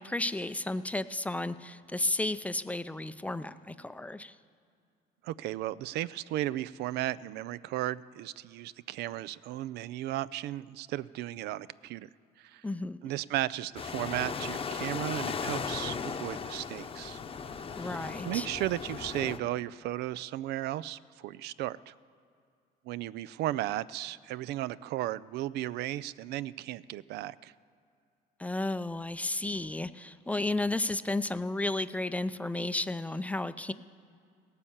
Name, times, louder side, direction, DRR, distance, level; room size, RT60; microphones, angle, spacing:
voice 1, 0.0-4.3 12.6-13.0 17.8-18.5 28.4-33.7, left 2 dB, 10° left, 12 dB, 0.4 m, -33 dB
voice 2, 5.2-12.1 12.4-12.6 13.0-17.2 18.2-21.9 22.9-27.5, right 14 dB, 80° right, 18 dB, 0.4 m, -35 dB
sound 1, 13.8-19.4, left 5 dB, 35° left, 0.8 m, -37 dB
17.0 x 9.8 x 7.2 m, 2.3 s
cardioid pair, 110°, 17 cm